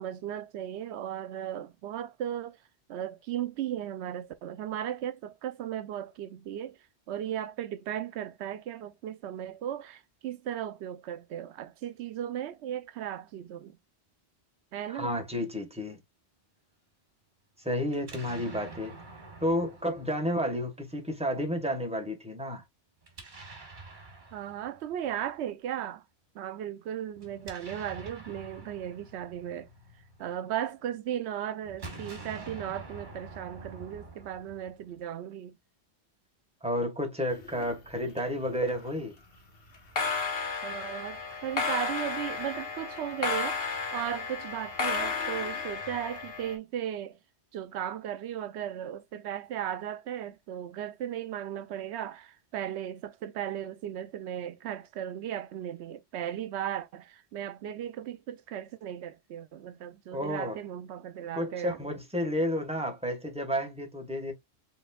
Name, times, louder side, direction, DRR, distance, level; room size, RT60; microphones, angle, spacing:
voice 1, 0.0-2.6 2.9-6.8 7.1-13.8 14.7-15.1 24.3-26.0 26.3-29.7 30.2-35.6 40.6-47.2 47.5-61.8, right 10 dB, 90° right, 0.9 m, -36 dB
voice 2, 14.9-16.0 17.6-19.0 19.4-22.6 36.6-39.1 60.1-60.6 61.3-64.3, equal, 5° right, 1.3 m, -31 dB
Explosion, 17.9-20.9 23.0-25.3 27.1-30.6 31.6-35.0, right 3 dB, 45° right, 1.6 m, -47 dB
sound 1, 37.3-38.2 38.4-38.9 39.7-46.5, left 4 dB, 60° left, 1.4 m, -33 dB
5.1 x 3.8 x 2.3 m
omnidirectional pair, 1.1 m